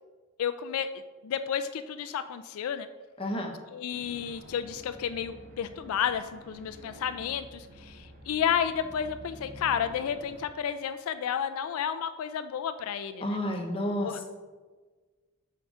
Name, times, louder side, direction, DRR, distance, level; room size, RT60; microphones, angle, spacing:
voice 1, 0.4-0.9 1.2-2.9 3.7-13.4 14.0-14.2, left 8 dB, 85° left, 11 dB, 0.3 m, -31 dB
voice 2, 3.2-3.5 13.2-14.2, left 1 dB, 25° left, 2 dB, 0.8 m, -31 dB
sound 1, 3.9-10.4, equal, 45° right, 1.2 m, -49 dB
7.8 x 4.7 x 3.6 m, 1.4 s
head